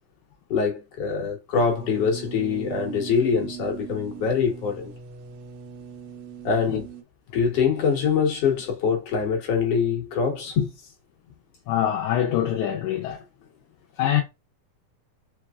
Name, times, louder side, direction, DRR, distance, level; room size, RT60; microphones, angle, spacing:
voice 1, 0.5-4.9 6.4-6.9 7.3-10.7, left 6 dB, 60° left, 2.2 m, -24 dB
sound 1, 1.5-7.0, right 6 dB, 85° right, 2.1 m, -40 dB
voice 2, 11.7-13.2 14.0-14.2, left 11 dB, 75° left, 2.1 m, -24 dB
4.6 x 4.6 x 2.4 m
omnidirectional pair, 3.5 m